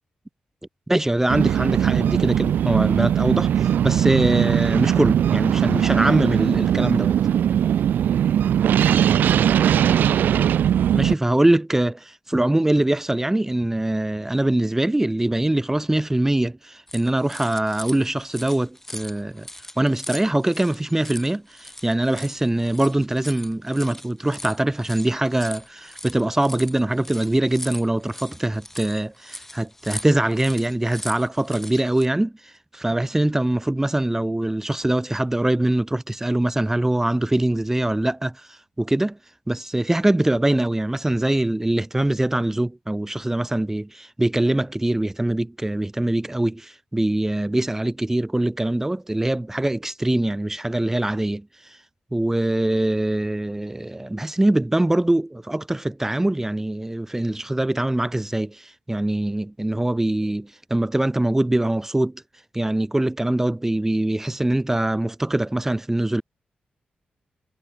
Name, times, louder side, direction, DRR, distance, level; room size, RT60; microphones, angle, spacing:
voice 1, 0.9-7.2 10.9-19.5 19.8-39.2 39.5-51.8 52.1-62.2 62.5-66.2, right 1 dB, 15° right, 1.8 m, -23 dB
sound 1, 1.3-11.1, right 9 dB, 85° right, 0.7 m, -20 dB
sound 2, 16.9-32.1, left 1 dB, 10° left, 6.8 m, -40 dB
cardioid pair, 85°, 3 cm